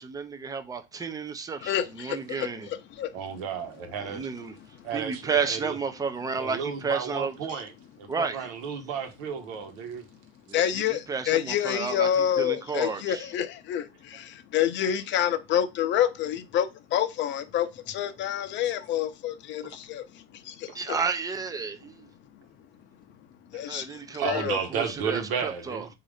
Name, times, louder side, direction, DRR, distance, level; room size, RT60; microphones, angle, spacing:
voice 1, 0.0-2.7 4.0-4.5 4.9-7.3 8.1-8.5 10.5-13.3 20.7-22.1 23.7-25.9, right 5 dB, 10° right, 0.5 m, -32 dB
voice 2, 1.6-3.1 10.5-21.0 23.5-24.6, left 10 dB, 35° left, 0.7 m, -28 dB
voice 3, 3.1-4.3 4.8-5.8 6.4-7.7 8.0-10.0 24.2-25.9, right 7 dB, 65° right, 1.3 m, -32 dB
3.9 x 2.8 x 4.8 m
supercardioid pair, 125°, 32 cm